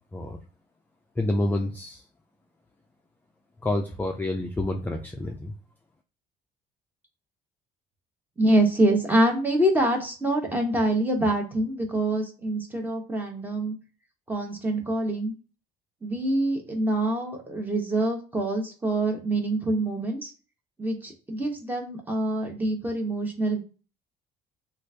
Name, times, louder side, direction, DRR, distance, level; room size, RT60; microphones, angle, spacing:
voice 1, 1.2-2.0 3.6-5.5, left 1 dB, 10° left, 2 dB, 0.4 m, -28 dB
voice 2, 8.4-13.7 14.3-15.3 16.0-20.3 20.8-23.6, right 1 dB, 10° right, 2 dB, 1.0 m, -25 dB
3.0 x 2.5 x 3.2 m, 0.35 s
cardioid pair, 110°, 17 cm